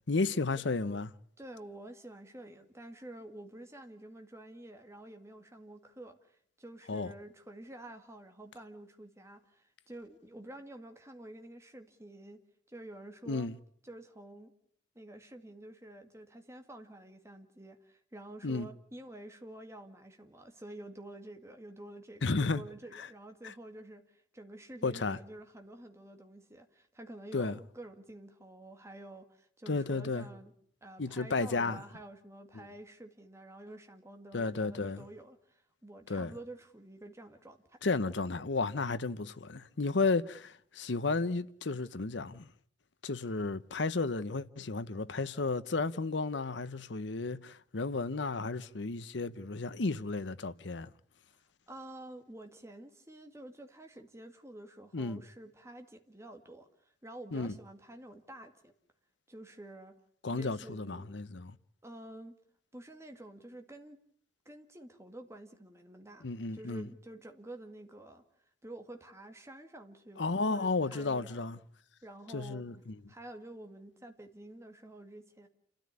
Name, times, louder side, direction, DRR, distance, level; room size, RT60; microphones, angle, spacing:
voice 1, 0.1-1.1 6.9-7.1 13.3-13.6 18.4-18.7 22.2-22.6 22.9-23.1 23.4-23.5 24.8-25.2 27.3-27.6 29.7-30.3 31.0-31.8 32.5-32.7 34.3-35.1 36.1-36.3 37.8-42.5 43.0-50.9 54.9-55.2 57.3-57.6 60.2-61.6 66.2-66.9 70.2-71.6 72.3-73.0, left 3 dB, 70° left, 0.9 m, -33 dB
voice 2, 1.4-13.5 13.8-14.5 15.0-30.5 30.8-37.8 51.7-58.7 59.3-59.9 60.3-61.1 61.8-62.4 62.7-64.0 64.5-66.3 66.5-68.2 68.6-71.5 72.0-72.6 73.1-75.5, right 1 dB, 15° right, 2.0 m, -49 dB
28.5 x 13.0 x 9.7 m
head